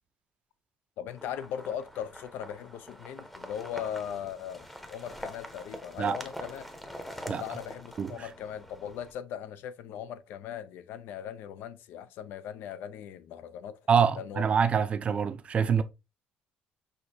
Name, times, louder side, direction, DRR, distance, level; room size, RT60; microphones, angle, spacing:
voice 1, 1.0-6.7 7.4-13.8 14.2-14.5, left 9 dB, 75° left, 0.5 m, -39 dB
sound 1, 1.1-9.1, equal, 5° left, 0.7 m, -44 dB
voice 2, 13.9-15.8, right 6 dB, 35° right, 0.5 m, -25 dB
6.3 x 2.6 x 2.7 m
cardioid pair, 115°, 3 cm